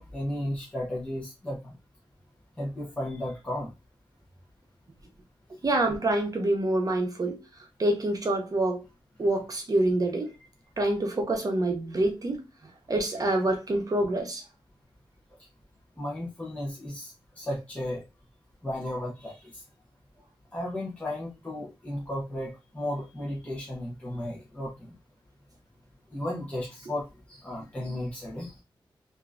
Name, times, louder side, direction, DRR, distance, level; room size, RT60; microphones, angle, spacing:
voice 1, 0.0-1.7 2.6-3.7 16.0-18.0 18.6-19.6 20.5-24.9 26.1-28.6, left 1 dB, 15° left, 0.9 m, -34 dB
voice 2, 5.6-7.4 7.8-8.8 9.2-10.3 10.8-12.4 12.9-14.4, right 1 dB, 40° right, 0.8 m, -26 dB
3.6 x 2.6 x 2.4 m
wide cardioid pair, 130°, 9 cm